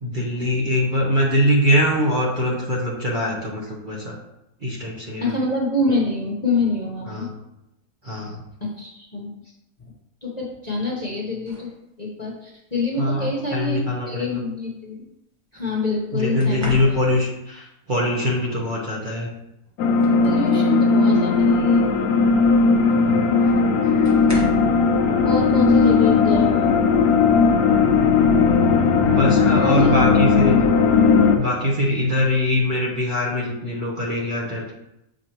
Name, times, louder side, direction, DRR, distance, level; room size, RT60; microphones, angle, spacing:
voice 1, 0.0-4.1 4.6-5.4 7.1-7.3 8.0-8.4 13.0-14.4 16.1-19.3 22.9-23.6 23.8-24.1 29.0-30.6 31.3-34.7, left 1 dB, 35° right, -4 dB, 1.2 m, -23 dB
voice 2, 5.2-7.3 8.6-9.3 10.2-11.7 12.0-15.0 15.5-17.0 20.2-21.9 25.2-26.7 29.6-29.9 30.7-30.8, left 2 dB, 30° left, -4 dB, 1.0 m, -26 dB
sound 1, 11.4-11.8 13.1-13.3 16.4-17.4 19.1-19.2 19.7-20.8 21.2-21.5 22.9-23.0 24.0-24.8 26.5-26.7 27.1-27.5, equal, 10° right, 1.1 m, -36 dB
sound 2, 19.8-31.4, left 5 dB, 70° left, 1.1 m, -17 dB
8.0 x 4.9 x 3.0 m, 0.86 s
omnidirectional pair, 1.7 m